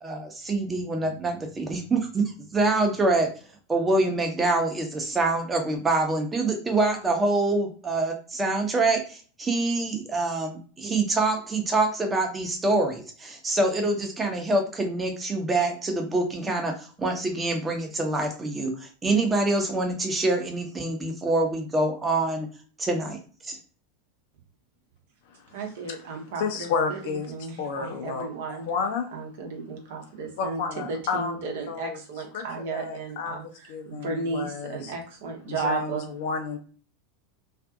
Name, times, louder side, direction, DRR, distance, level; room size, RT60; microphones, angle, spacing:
voice 1, 0.0-3.3 3.7-22.5 22.8-23.6, right 2 dB, 20° right, 3 dB, 0.7 m, -25 dB
voice 2, 25.5-28.7 29.1-36.1, right 4 dB, 65° right, 3 dB, 0.7 m, -34 dB
voice 3, 26.4-27.3 27.6-29.1 30.4-32.0 32.3-32.5 32.7-33.4 33.7-34.9 35.5-36.6, left 5 dB, 60° left, 5 dB, 0.6 m, -31 dB
2.5 x 2.5 x 2.3 m, 0.40 s
figure-of-eight pair, 85°, 0 cm